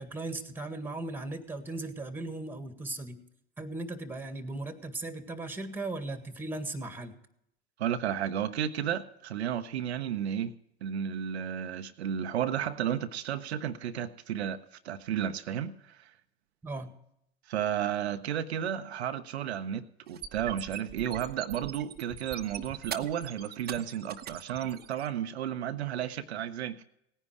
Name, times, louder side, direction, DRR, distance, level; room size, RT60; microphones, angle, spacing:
voice 1, 0.0-3.2 3.6-7.2 16.6-16.9, right 2 dB, 5° right, 1.7 m, -37 dB
voice 2, 7.8-10.5 10.8-14.6 14.8-16.1 17.5-26.8, right 9 dB, 80° right, 0.8 m, -33 dB
sound 1, 20.1-25.1, right 10 dB, 30° right, 1.0 m, -41 dB
17.5 x 10.0 x 4.7 m
hypercardioid pair, 85°, 32 cm